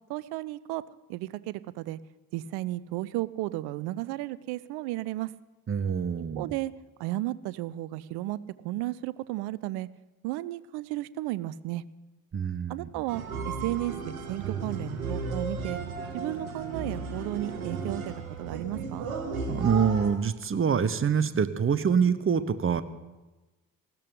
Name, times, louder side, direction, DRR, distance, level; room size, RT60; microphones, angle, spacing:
voice 1, 0.1-0.8 1.1-2.0 2.3-5.3 6.3-6.7 7.0-8.4 8.6-9.9 10.2-11.8 12.7-14.0 14.3-15.8 16.1-19.1, right 16 dB, 65° right, 18 dB, 0.7 m, -33 dB
voice 2, 5.7-6.5 12.3-12.9 19.5-22.8, right 7 dB, 30° right, 14 dB, 1.0 m, -25 dB
sound 1, 13.1-20.1, right 4 dB, 80° right, 1.6 m, -34 dB
19.0 x 14.5 x 3.9 m, 1.1 s
figure-of-eight pair, 45°, 42 cm